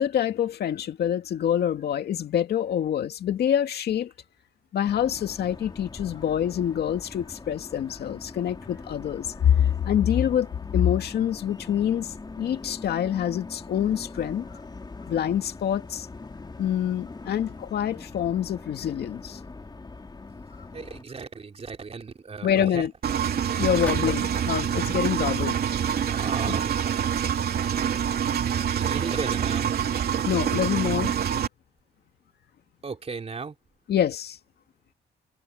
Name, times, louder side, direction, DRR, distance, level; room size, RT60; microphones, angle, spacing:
voice 1, 0.0-4.1 4.7-14.5 15.0-16.1 16.6-19.4 22.4-22.9 23.6-25.6 26.5-26.6 30.3-31.1 33.9-34.4, left 9 dB, 70° left, 2.2 m, -26 dB
sound 1, 4.8-21.0, left 3 dB, 25° left, 3.2 m, -42 dB
voice 2, 20.7-22.9 26.1-26.8 28.8-29.7 32.8-33.6, right 4 dB, 35° right, 3.6 m, -35 dB
Engine, 23.0-31.5, right 8 dB, 65° right, 2.9 m, -26 dB
sound 2, 23.7-25.7, left 1 dB, 10° left, 3.2 m, -41 dB
cardioid pair, 85°, 17 cm